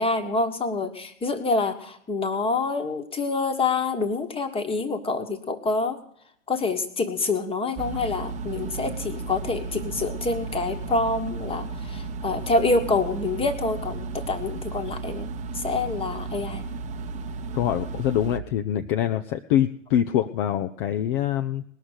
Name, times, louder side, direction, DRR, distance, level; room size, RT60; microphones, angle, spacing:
voice 1, 0.0-6.0 6.5-15.3 15.5-16.7, left 3 dB, 15° left, 8 dB, 1.4 m, -26 dB
sound 1, 7.8-18.4, right 4 dB, 20° right, 0.8 m, -34 dB
voice 2, 17.5-21.6, left 11 dB, 40° left, 8 dB, 0.7 m, -24 dB
19.5 x 6.6 x 8.2 m, 0.67 s
figure-of-eight pair, 95°, 39 cm